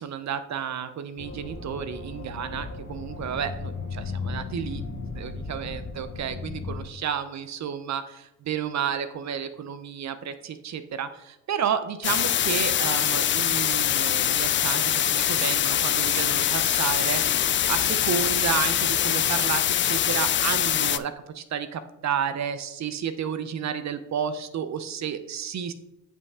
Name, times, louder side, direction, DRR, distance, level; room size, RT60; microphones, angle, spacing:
voice 1, 0.0-4.8 5.1-25.7, right 8 dB, 50° right, 12 dB, 0.8 m, -31 dB
sound 1, 1.2-6.8, left 4 dB, 50° left, 1.6 m, -36 dB
sound 2, 12.0-21.0, left 10 dB, 35° left, 0.4 m, -23 dB
Walk footsteps, 16.0-20.2 20.4-20.5, left 1 dB, ahead, 2.4 m, -44 dB
7.8 x 5.5 x 3.6 m, 0.90 s
supercardioid pair, 60°, 37 cm